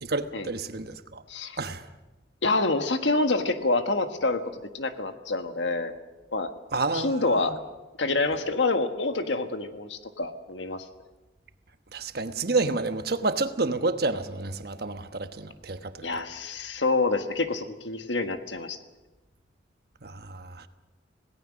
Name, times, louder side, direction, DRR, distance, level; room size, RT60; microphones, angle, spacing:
voice 1, 0.0-1.2 1.6-1.9 6.7-7.5 11.9-16.1 20.0-20.7, right 3 dB, 60° right, 1.2 m, -29 dB
voice 2, 2.4-5.9 6.3-6.5 6.9-7.6 8.0-10.8 16.0-18.8, left 3 dB, 90° left, 1.6 m, -27 dB
26.5 x 17.5 x 6.3 m
head